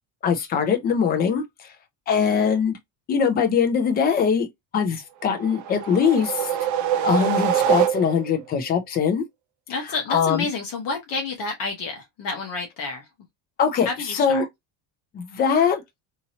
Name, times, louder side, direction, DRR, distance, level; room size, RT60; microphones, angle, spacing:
voice 1, 0.2-1.7 2.1-2.8 3.1-4.5 4.7-6.5 7.0-9.2 10.1-10.5 13.6-13.9 14.1-14.5 15.1-15.8, left 6 dB, 25° left, 0.3 m, -22 dB
sound 1, 5.3-8.4, right 9 dB, 45° right, 0.4 m, -24 dB
voice 2, 9.7-13.1 13.8-14.4, left 4 dB, 45° left, 0.8 m, -29 dB
2.9 x 2.8 x 2.7 m
cardioid pair, 175°, 44 cm